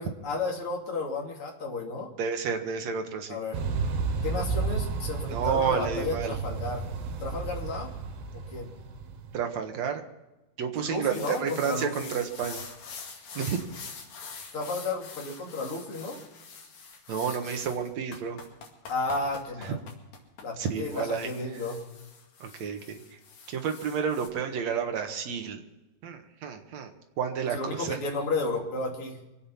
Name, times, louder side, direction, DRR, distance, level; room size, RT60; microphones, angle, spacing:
voice 1, 0.0-2.1 3.3-3.6 4.2-6.9 7.2-7.9 8.3-8.7 10.8-12.1 14.5-16.2 18.9-19.8 20.4-21.8 27.4-29.2, left 3 dB, 40° left, 0 dB, 3.3 m, -33 dB
voice 2, 2.2-3.4 5.3-6.3 9.3-10.0 10.6-12.6 13.4-13.6 17.1-18.4 19.6-19.7 20.6-21.3 22.4-23.0 23.5-25.6 26.0-26.9 27.2-28.0, right 7 dB, 60° right, 5 dB, 2.3 m, -30 dB
sound 1, 3.5-9.4, right 4 dB, 85° right, 3.4 m, -32 dB
sound 2, 11.1-24.3, left 5 dB, 60° left, 3.7 m, -45 dB
25.5 x 8.9 x 5.7 m, 1.0 s
omnidirectional pair, 4.2 m